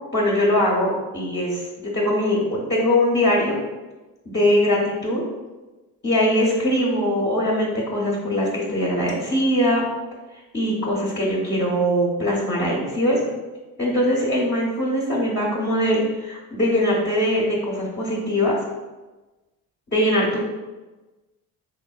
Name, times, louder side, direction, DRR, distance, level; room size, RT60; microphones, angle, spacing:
voice 1, 0.1-3.6 4.3-5.2 6.0-9.8 10.5-13.2 13.8-18.6 19.9-20.4, equal, 25° left, -5 dB, 0.8 m, -21 dB
3.4 x 2.1 x 2.3 m, 1.2 s
supercardioid pair, 60°, 41 cm